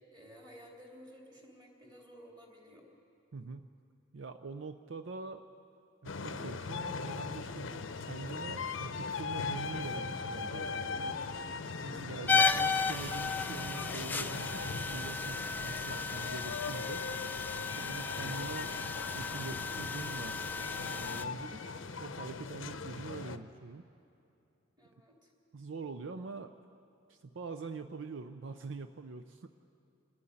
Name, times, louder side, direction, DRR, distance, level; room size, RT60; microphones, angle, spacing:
voice 1, 0.0-2.8 10.9-11.3 11.8-12.2 24.8-25.3, equal, 20° right, 0 dB, 2.9 m, -54 dB
voice 2, 3.3-3.7 4.1-5.4 6.0-11.2 11.8-17.0 17.8-18.7 19.1-20.4 20.8-23.8 25.5-26.5 27.1-29.5, right 4 dB, 65° right, 9 dB, 0.5 m, -44 dB
sound 1, 6.1-23.4, left 4 dB, 75° left, 0.7 m, -40 dB
sound 2, 12.3-21.3, left 5 dB, 10° left, 0.5 m, -34 dB
27.0 x 9.7 x 10.0 m, 2.6 s
head